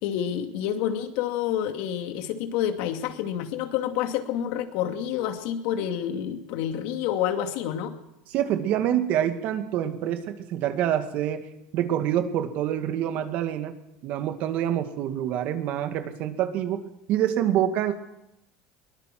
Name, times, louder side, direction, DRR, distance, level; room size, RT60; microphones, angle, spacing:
voice 1, 0.0-7.9, left 10 dB, 70° left, 6 dB, 2.6 m, -28 dB
voice 2, 8.3-11.4 11.7-13.7 14.0-16.8 17.1-17.9, right 11 dB, 60° right, 8 dB, 2.3 m, -26 dB
22.5 x 20.0 x 6.2 m, 0.86 s
supercardioid pair, 120°, 3 cm